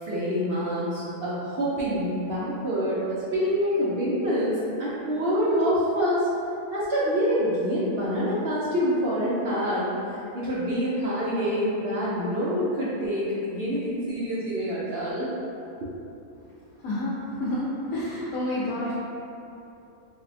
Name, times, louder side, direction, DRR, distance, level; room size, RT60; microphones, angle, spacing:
voice 1, 0.0-4.5 4.8-6.3 6.7-9.9 10.3-15.3 15.8-15.9, equal, 70° right, -8 dB, 0.5 m, -26 dB
voice 2, 16.8-17.6 17.9-18.9, left 1 dB, 80° left, -7 dB, 1.0 m, -29 dB
4.4 x 2.1 x 2.6 m, 2.8 s
omnidirectional pair, 1.5 m